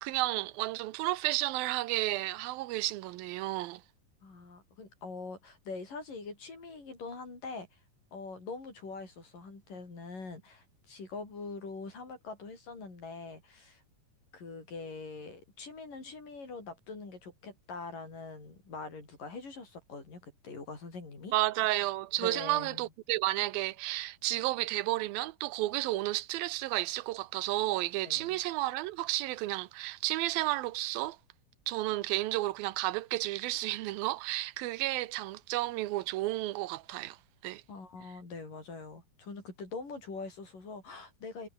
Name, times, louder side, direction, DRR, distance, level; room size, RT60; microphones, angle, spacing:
voice 1, 0.0-3.8 21.3-31.2 31.7-37.2 37.4-37.6, right 17 dB, 90° right, 2.7 m, -32 dB
voice 2, 4.2-7.8 8.1-13.8 14.3-21.4 22.2-22.9 28.0-28.4 37.7-41.5, left 4 dB, 65° left, 9.0 m, -43 dB
omnidirectional pair, 4.1 m